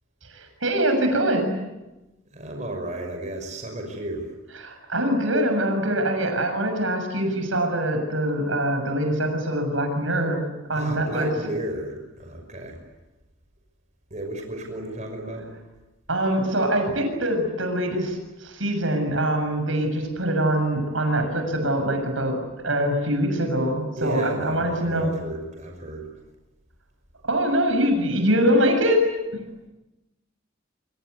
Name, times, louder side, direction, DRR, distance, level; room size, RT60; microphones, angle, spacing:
voice 1, 0.3-1.5 4.6-10.4 10.7-11.3 16.1-22.4 22.6-25.1 27.2-29.0 29.3-29.4, right 1 dB, 75° right, 5 dB, 7.2 m, -23 dB
voice 2, 2.3-4.2 10.7-12.8 14.1-15.5 24.0-26.1, right 1 dB, 35° right, 2 dB, 5.9 m, -33 dB
28.5 x 25.5 x 8.3 m, 1.0 s
head